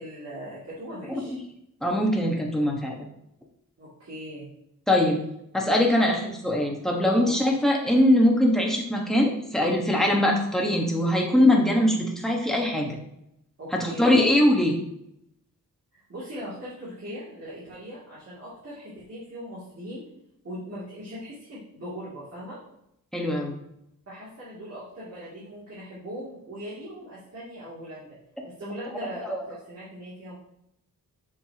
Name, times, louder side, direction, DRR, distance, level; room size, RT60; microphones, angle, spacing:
voice 1, 0.0-1.4 3.8-4.5 7.1-7.4 10.0-10.2 13.6-14.2 16.1-20.0 20.4-22.6 24.1-28.1 28.4-30.3, equal, 45° right, -9 dB, 2.6 m, -39 dB
voice 2, 1.8-3.1 4.9-5.2 5.5-13.0 13.7-14.7 23.1-23.5 29.2-29.4, left 1 dB, ahead, -1 dB, 1.3 m, -22 dB
7.4 x 6.9 x 2.9 m, 0.78 s
wide cardioid pair, 165°, 34 cm